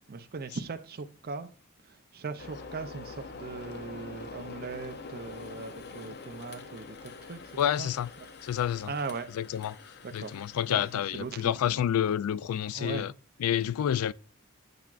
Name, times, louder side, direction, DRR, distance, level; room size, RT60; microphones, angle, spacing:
voice 1, 0.1-1.5 1.8-7.5 7.8-7.9 8.9-9.3 10.0-10.4 10.7-11.8 12.7-13.1, right 4 dB, 45° right, 0.5 m, -39 dB
sound 1, 2.4-11.8, left 4 dB, 50° left, 0.7 m, -45 dB
voice 2, 7.6-8.1 8.4-8.9 9.3-13.1 13.4-14.1, left 10 dB, 75° left, 0.3 m, -29 dB
7.8 x 5.8 x 2.5 m
head